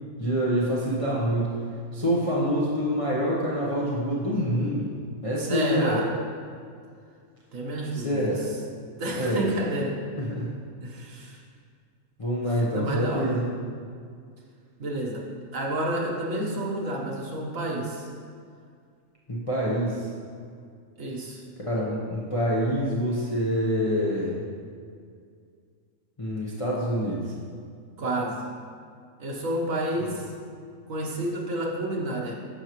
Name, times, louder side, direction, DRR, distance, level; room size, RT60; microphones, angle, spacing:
voice 1, 0.2-1.5 1.9-4.9 5.2-6.0 8.0-8.4 9.2-9.4 10.2-10.5 12.2-13.5 19.3-20.1 21.6-24.4 26.2-27.3 30.1-30.2, equal, 25° left, -6 dB, 1.1 m, -26 dB
voice 2, 5.4-6.1 7.5-8.5 9.0-10.0 10.8-11.4 12.7-13.4 14.8-18.1 21.0-21.4 28.0-28.4 29.2-30.3 30.9-32.3, right 1 dB, 75° right, -2 dB, 1.5 m, -30 dB
10.5 x 6.6 x 3.1 m, 2.2 s
omnidirectional pair, 1.4 m